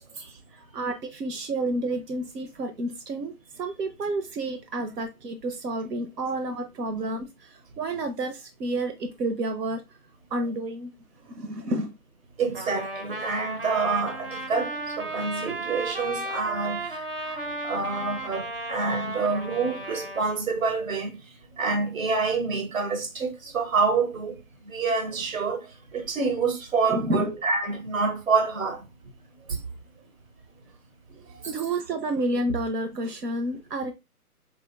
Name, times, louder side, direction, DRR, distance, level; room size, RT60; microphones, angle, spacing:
voice 1, 0.2-9.8 10.3-10.9 11.2-11.9 26.9-27.3 31.3-33.9, right 2 dB, 90° right, 0.7 m, -30 dB
voice 2, 12.4-21.2 21.6-24.4 24.6-25.6 25.9-28.8, right 4 dB, 60° right, 1.2 m, -27 dB
Trumpet, 12.5-20.3, right 2 dB, 40° right, 0.6 m, -34 dB
4.2 x 2.5 x 2.2 m
hypercardioid pair, 160°, 47 cm